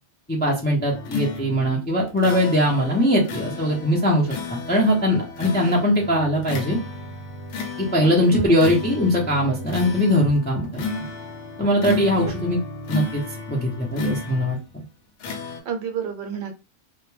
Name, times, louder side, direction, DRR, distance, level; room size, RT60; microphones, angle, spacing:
voice 1, 0.3-6.8 7.8-10.8 11.6-12.6 12.9-13.2 13.5-14.8, equal, 15° left, -2 dB, 0.3 m, -21 dB
sound 1, 0.9-14.7 15.2-15.6, left 3 dB, 80° left, 0.9 m, -33 dB
voice 2, 8.0-8.5 12.2-12.3 15.6-16.5, right 7 dB, 70° right, 5 dB, 0.8 m, -30 dB
2.2 x 2.1 x 3.1 m, 0.30 s
omnidirectional pair, 1.2 m